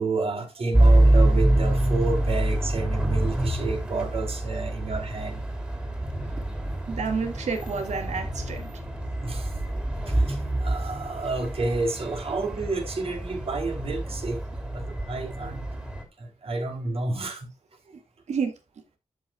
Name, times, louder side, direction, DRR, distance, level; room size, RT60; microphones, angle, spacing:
voice 1, 0.0-5.4 9.2-9.6 10.1-14.4 14.7-15.7 16.2-17.5, right 3 dB, 55° right, 2.9 m, -30 dB
sound 1, 0.7-16.0, right 1 dB, 10° right, 2.9 m, -26 dB
voice 2, 6.9-8.7 18.3-18.5, right 5 dB, 80° right, 1.8 m, -29 dB
13.5 x 5.7 x 2.2 m
wide cardioid pair, 115°, 12 cm